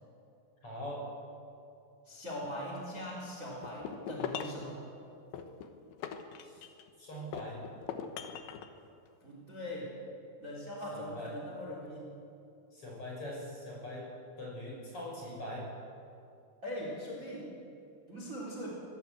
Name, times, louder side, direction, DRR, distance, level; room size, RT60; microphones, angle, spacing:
voice 1, 0.6-1.1 6.4-6.6 7.0-7.6 11.0-11.3 12.7-14.1 14.4-15.7, left 1 dB, 30° left, -3 dB, 7.0 m, -42 dB
voice 2, 2.1-4.8 9.2-10.0 10.4-12.1 16.6-17.5 18.1-18.8, equal, 20° right, -2 dB, 3.8 m, -41 dB
sound 1, 3.6-4.7 5.3-6.9 7.3-8.7, left 8 dB, 85° left, 3.5 m, -41 dB
24.5 x 18.5 x 7.8 m, 2.6 s
omnidirectional pair, 5.0 m